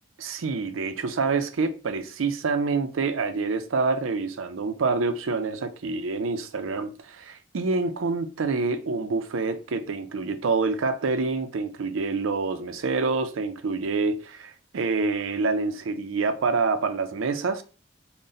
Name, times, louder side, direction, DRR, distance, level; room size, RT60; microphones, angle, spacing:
voice 1, 0.2-17.6, right 4 dB, 85° right, 0.5 m, -27 dB
3.9 x 2.2 x 3.8 m
head